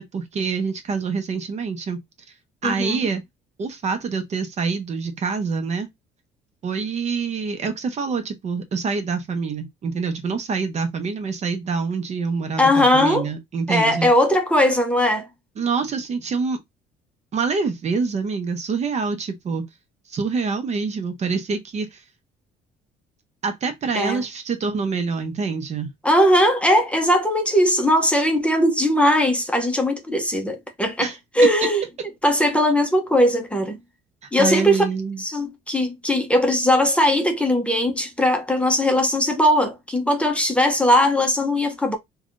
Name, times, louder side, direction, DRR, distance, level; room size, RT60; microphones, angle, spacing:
voice 1, 0.0-2.0 2.6-3.2 3.6-5.9 6.6-14.1 15.6-16.6 17.3-19.6 20.1-22.0 23.4-25.9 31.0-31.2 34.4-35.2, right 5 dB, 40° right, 0.7 m, -26 dB
voice 2, 2.6-3.1 12.6-13.3 13.7-15.3 23.9-24.2 26.0-31.8 32.2-33.8 34.3-34.8 35.2-42.0, left 1 dB, 5° left, 0.7 m, -19 dB
3.4 x 2.3 x 2.5 m
cardioid pair, 110°, 17 cm